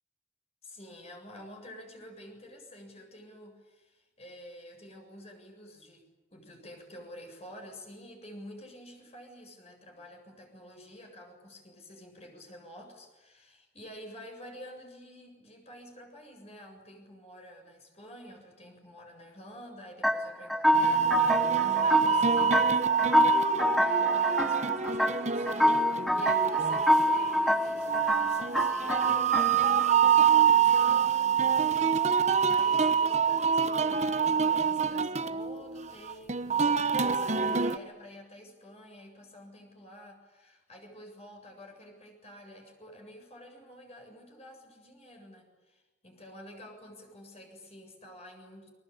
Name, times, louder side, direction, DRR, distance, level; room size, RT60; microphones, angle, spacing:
voice 1, 0.6-32.0 32.5-48.7, equal, 35° left, 3 dB, 7.4 m, -49 dB
sound 1, 20.0-29.9, left 1 dB, ahead, 0.9 m, -27 dB
sound 2, 20.7-37.8, right 7 dB, 40° right, 1.1 m, -26 dB
29.5 x 23.0 x 8.7 m, 1.1 s
head